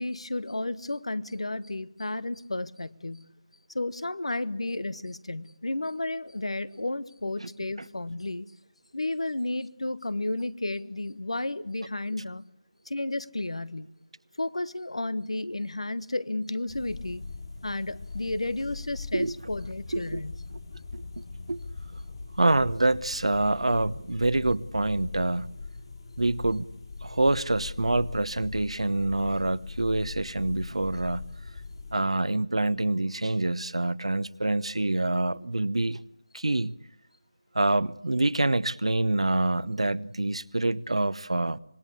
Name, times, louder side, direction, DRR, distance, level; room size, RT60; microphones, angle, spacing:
voice 1, 0.0-3.3 3.7-8.5 8.9-12.4 12.8-13.9 14.4-17.2 17.6-20.3, left 2 dB, 80° left, 1.2 m, -32 dB
sound 1, 16.7-31.9, left 4 dB, 55° left, 7.2 m, -41 dB
voice 2, 20.9-21.6 22.4-25.5 26.2-26.7 27.0-31.3 31.9-36.0 36.3-36.8 37.5-41.6, right 2 dB, 85° right, 1.0 m, -26 dB
26.0 x 20.5 x 8.4 m
figure-of-eight pair, 165°, 3 cm